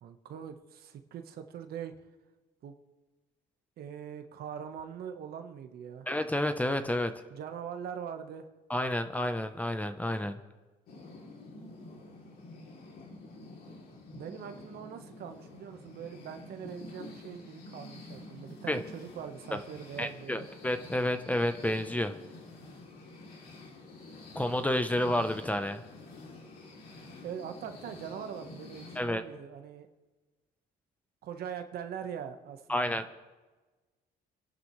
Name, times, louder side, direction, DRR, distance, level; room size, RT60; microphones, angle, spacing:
voice 1, 0.0-1.9 2.6-2.7 3.8-6.1 7.3-8.5 14.1-20.5 27.2-29.9 31.2-33.0, right 8 dB, 65° right, 7 dB, 1.4 m, -42 dB
voice 2, 6.1-7.1 8.7-10.4 18.7-18.8 19.5-19.6 20.0-22.2 24.3-25.8 29.0-29.2 32.7-33.2, left 1 dB, 10° left, 9 dB, 0.9 m, -30 dB
sound 1, 10.9-29.0, left 2 dB, 70° left, 3.2 m, -49 dB
27.5 x 11.5 x 3.3 m, 1.2 s
cardioid pair, 110°, 17 cm